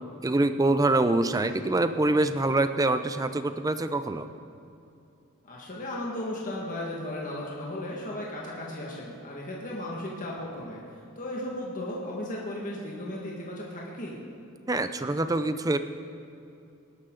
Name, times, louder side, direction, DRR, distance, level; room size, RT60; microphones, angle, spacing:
voice 1, 0.2-4.3 14.7-15.8, right 2 dB, 15° right, 10 dB, 0.5 m, -25 dB
voice 2, 5.4-14.2, left 1 dB, 35° left, -4 dB, 1.7 m, -35 dB
19.5 x 12.0 x 3.9 m, 2.7 s
head